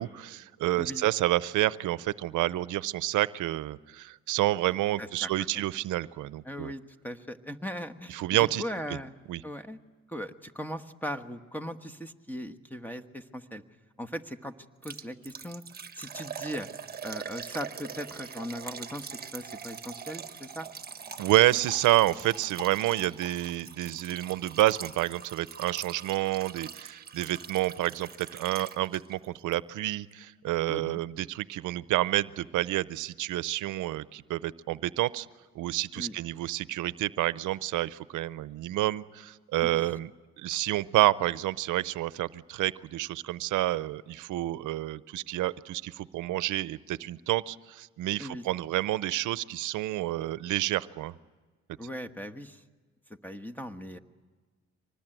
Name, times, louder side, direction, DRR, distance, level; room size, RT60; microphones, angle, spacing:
voice 1, 0.0-6.7 8.1-8.6 9.3-9.4 21.2-35.3 35.5-40.1 40.4-51.1, right 15 dB, 85° right, 17 dB, 0.7 m, -29 dB
voice 2, 5.0-5.6 6.4-9.1 9.4-9.8 10.1-13.6 14.0-14.5 14.8-15.6 15.9-16.7 17.0-20.7 30.7-31.0 35.9-36.2 39.6-39.8 48.2-48.4 51.8-52.6 53.2-54.0, equal, 5° left, 9 dB, 1.3 m, -39 dB
Liquid, 14.8-29.2 29.5-29.6 30.1-30.2, right 6 dB, 30° right, 1.3 m, -43 dB
25.0 x 20.0 x 9.1 m, 1.4 s
cardioid pair, 90°, 30 cm